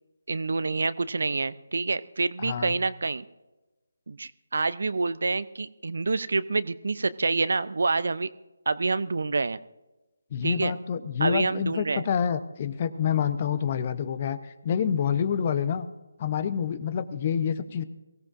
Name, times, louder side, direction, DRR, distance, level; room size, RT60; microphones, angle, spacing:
voice 1, 0.3-3.2 4.1-8.3 8.7-9.6 10.4-10.7 11.2-12.1, right 3 dB, 60° right, 16 dB, 0.5 m, -27 dB
voice 2, 2.4-2.7 10.3-14.4 14.6-15.9 16.2-17.8, left 7 dB, 35° left, 13 dB, 0.8 m, -27 dB
23.0 x 16.5 x 2.5 m, 1.1 s
figure-of-eight pair, 150°, 0 cm